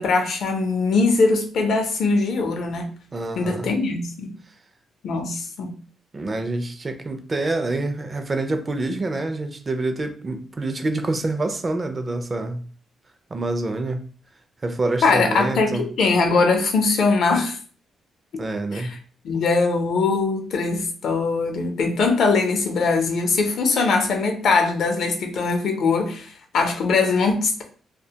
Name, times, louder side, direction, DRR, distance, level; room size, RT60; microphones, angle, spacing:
voice 1, 0.0-2.9 3.4-4.3 5.0-5.8 15.0-17.6 18.3-18.4 18.7-19.0 19.2-27.6, left 4 dB, 65° left, 0.5 m, -21 dB
voice 2, 3.1-3.7 6.1-12.6 13.3-14.0 14.6-15.9 18.3-18.9, right 2 dB, 25° right, 0.4 m, -26 dB
2.4 x 2.1 x 2.7 m
cardioid pair, 120°, 0 cm